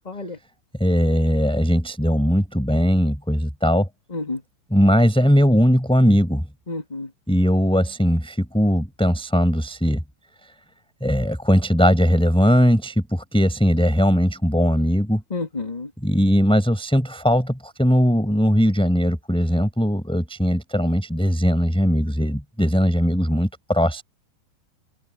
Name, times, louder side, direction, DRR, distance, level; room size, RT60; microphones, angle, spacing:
voice 1, 0.0-0.4 4.1-4.4 6.7-7.1 15.3-15.9, left 3 dB, 30° left, 0.8 m, -29 dB
voice 2, 0.8-3.9 4.7-6.4 7.3-10.0 11.0-15.2 16.0-24.0, equal, ahead, 5.7 m, -19 dB
omnidirectional pair, 4.8 m